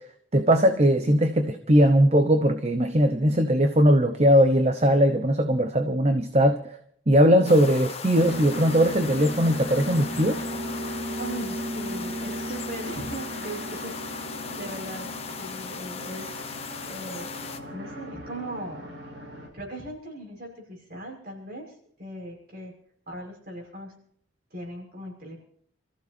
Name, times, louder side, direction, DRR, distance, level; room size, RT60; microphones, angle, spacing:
voice 1, 0.3-6.6 7.1-10.4, equal, 35° right, 7 dB, 0.9 m, -20 dB
sound 1, 7.4-17.6, left 6 dB, 30° left, 1.2 m, -38 dB
sound 2, 8.1-19.5, equal, 65° right, 7.1 m, -36 dB
voice 2, 11.2-15.1 15.4-16.4 16.8-18.9 19.5-21.7 22.0-22.7 23.1-23.9 24.5-25.4, right 1 dB, 50° right, 0 dB, 6.0 m, -39 dB
28.0 x 15.0 x 2.8 m, 0.63 s
head